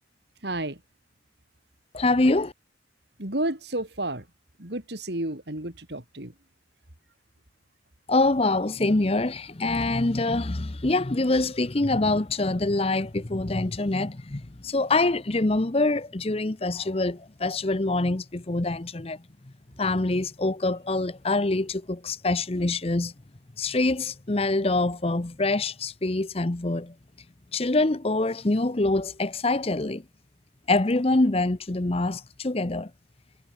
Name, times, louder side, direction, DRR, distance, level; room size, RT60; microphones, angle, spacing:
voice 1, 0.4-0.8 3.2-4.3 4.6-6.3, right 1 dB, 60° right, 3.5 m, -31 dB
voice 2, 1.9-2.5 8.1-19.2 19.8-23.1 23.6-26.9 27.5-30.0 30.7-32.9, left 2 dB, 30° left, 0.8 m, -25 dB
head